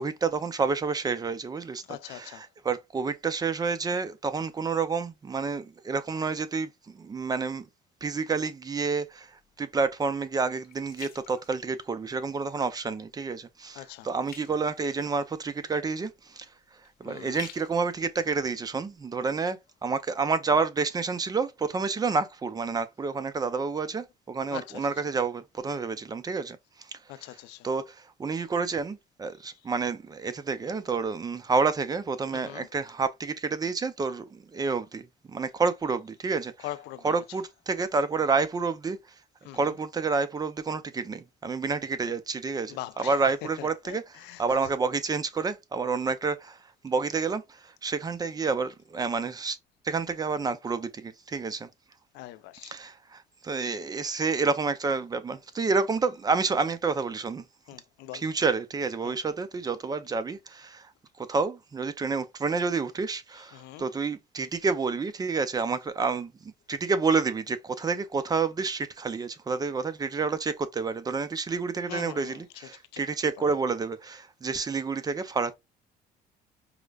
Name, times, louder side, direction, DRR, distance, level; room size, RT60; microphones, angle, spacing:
voice 1, 0.0-7.6 8.0-9.3 9.6-16.5 17.0-26.6 27.6-35.0 35.3-36.5 37.0-39.0 39.5-46.6 46.8-49.6 49.8-51.7 52.7-57.4 58.1-60.9 61.2-75.5, right 4 dB, 20° right, 0.5 m, -29 dB
voice 2, 1.9-2.4 13.7-14.1 17.0-17.4 24.5-25.1 27.1-27.7 32.3-32.7 36.6-37.2 39.4-39.7 42.7-43.1 43.6-44.4 52.1-52.7 57.7-58.2 59.0-59.2 63.5-63.9 71.9-72.4 72.9-73.0, left 14 dB, 90° left, 0.4 m, -42 dB
sound 1, 9.1-12.3 12.8-13.1 13.4-19.4 19.9-20.0, left 8 dB, 65° left, 0.9 m, -51 dB
4.8 x 2.1 x 2.3 m
cardioid pair, 110°, 17 cm